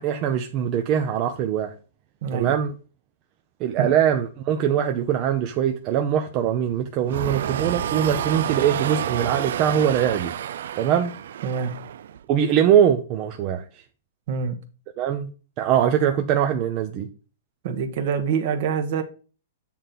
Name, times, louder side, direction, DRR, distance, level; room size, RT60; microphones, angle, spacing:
voice 1, 0.0-1.7 2.3-2.7 3.6-10.3 10.8-11.1 12.3-13.8 15.0-15.3 15.6-17.1, right 9 dB, 30° right, 0.6 m, -22 dB
voice 2, 2.2-2.6 3.8-3.9 11.4-11.7 14.3-14.6 17.6-19.0, right 6 dB, 45° right, 1.3 m, -25 dB
sound 1, 7.1-12.2, right 10 dB, 65° right, 0.3 m, -29 dB
8.5 x 3.8 x 4.3 m
hypercardioid pair, 165°, 0 cm